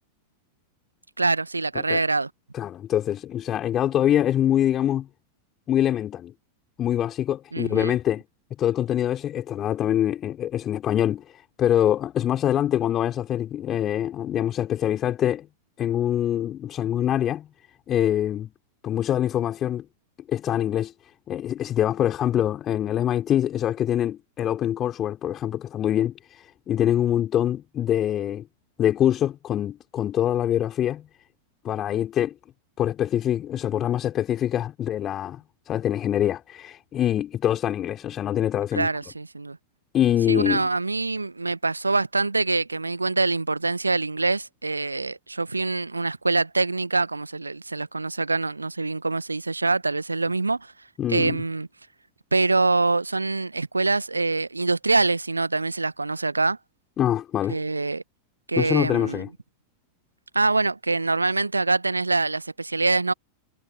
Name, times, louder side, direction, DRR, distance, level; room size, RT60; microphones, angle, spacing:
voice 1, 1.2-2.3 7.5-8.0 38.7-39.6 40.3-50.7 51.1-51.7 52.3-56.6 57.5-58.0 58.5-59.2 60.3-63.1, right 3 dB, 80° right, 1.1 m, -24 dB
voice 2, 2.5-5.1 5.7-6.3 6.8-8.2 8.6-15.5 15.8-17.5 17.9-18.5 18.8-19.9 20.3-20.9 21.3-28.4 28.8-31.1 31.6-32.3 32.8-38.9 39.9-40.7 51.0-51.4 57.0-57.6 58.6-59.3, left 11 dB, 30° left, 3.4 m, -24 dB
figure-of-eight pair, 90°, 0 cm